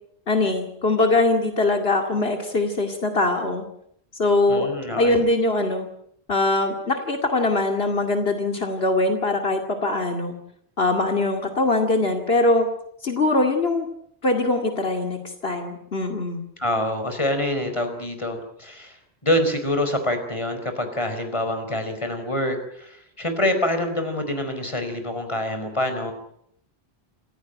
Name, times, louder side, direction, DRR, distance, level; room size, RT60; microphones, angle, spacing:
voice 1, 0.3-3.6 4.1-4.7 4.9-5.9 6.3-10.3 10.8-12.7 13.0-13.9 14.2-16.4, left 2 dB, 75° left, 4 dB, 2.6 m, -22 dB
voice 2, 4.5-5.2 16.6-19.0 19.2-26.1, left 1 dB, 30° left, 7 dB, 4.6 m, -26 dB
27.5 x 16.0 x 9.0 m, 0.72 s
omnidirectional pair, 1.0 m